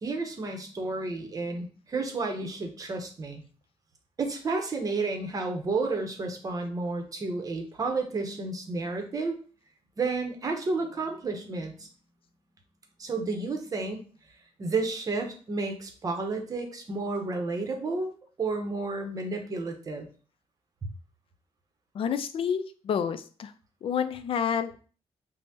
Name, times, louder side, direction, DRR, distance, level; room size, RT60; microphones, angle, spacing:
voice 1, 0.0-3.4 4.2-9.4 10.0-11.9 13.0-14.0 14.6-20.1, right 3 dB, 35° right, 3 dB, 0.7 m, -31 dB
voice 2, 21.9-23.5 23.8-24.8, left 7 dB, 55° left, 10 dB, 0.4 m, -29 dB
5.3 x 2.0 x 2.7 m, 0.39 s
wide cardioid pair, 145°, 11 cm